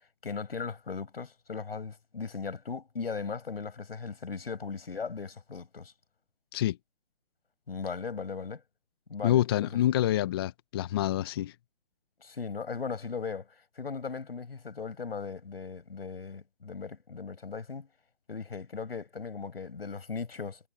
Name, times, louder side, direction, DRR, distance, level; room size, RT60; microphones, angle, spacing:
voice 1, 0.2-5.9 7.7-8.6 9.1-9.7 12.2-17.9 18.3-20.6, left 5 dB, 75° left, 7.0 m, -38 dB
voice 2, 9.2-11.5, left 12 dB, 25° left, 0.9 m, -27 dB
hypercardioid pair, 155°, 30 cm